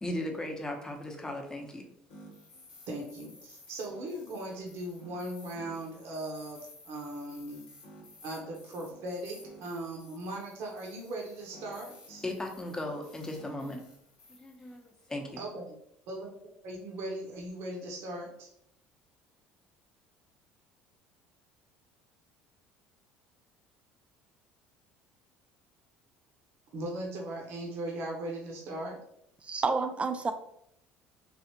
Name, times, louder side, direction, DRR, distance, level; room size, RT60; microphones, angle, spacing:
voice 1, 0.0-1.9 12.2-13.8 14.4-15.4, left 1 dB, 15° left, 2 dB, 0.7 m, -37 dB
sound 1, 2.1-15.2, left 1 dB, 85° left, 0.9 m, -54 dB
voice 2, 2.9-7.6 8.2-12.2 15.4-15.6 16.1-16.3 16.6-18.5 26.7-29.0, right 1 dB, 65° right, 0 dB, 0.8 m, -38 dB
voice 3, 29.4-30.3, right 4 dB, 25° right, 8 dB, 0.4 m, -29 dB
3.4 x 2.5 x 2.8 m, 0.73 s
hypercardioid pair, 75°, 5 cm